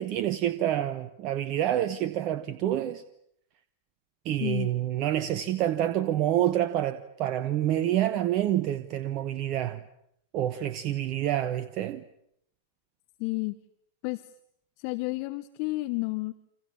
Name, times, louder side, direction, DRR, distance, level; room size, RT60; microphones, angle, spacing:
voice 1, 0.0-3.0 4.2-9.8 10.3-12.0, right 12 dB, 45° right, 1.2 m, -27 dB
voice 2, 13.2-13.6 14.0-14.3 14.8-16.3, left 24 dB, 50° left, 1.1 m, -31 dB
29.5 x 26.5 x 7.3 m
figure-of-eight pair, 95°, 0 cm